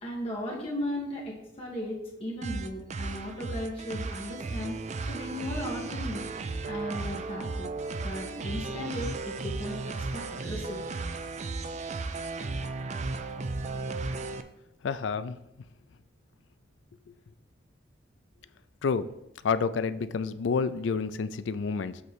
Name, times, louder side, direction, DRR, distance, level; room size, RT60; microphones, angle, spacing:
voice 1, 0.0-4.8 5.1-7.7 8.0-10.8, left 1 dB, 30° left, -4 dB, 1.5 m, -36 dB
sound 1, 2.4-14.4, right 3 dB, 40° right, 0.4 m, -35 dB
voice 2, 14.8-15.4 18.8-19.1 19.4-22.0, left 5 dB, 85° left, 13 dB, 0.4 m, -29 dB
7.9 x 3.2 x 6.1 m, 0.88 s
head